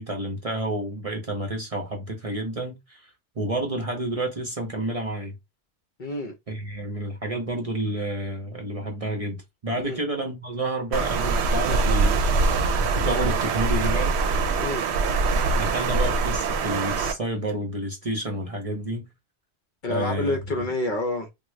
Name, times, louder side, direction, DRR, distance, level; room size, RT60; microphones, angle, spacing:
voice 1, 0.0-5.4 6.5-14.2 15.5-19.1 19.9-20.4, right 1 dB, 40° right, 0.7 m, -30 dB
voice 2, 6.0-6.3 9.8-10.0 14.6-14.8 19.8-21.3, left 2 dB, 50° left, 0.7 m, -28 dB
Water, 10.9-17.1, right 3 dB, 75° right, 0.8 m, -23 dB
3.6 x 2.3 x 3.1 m
omnidirectional pair, 1.1 m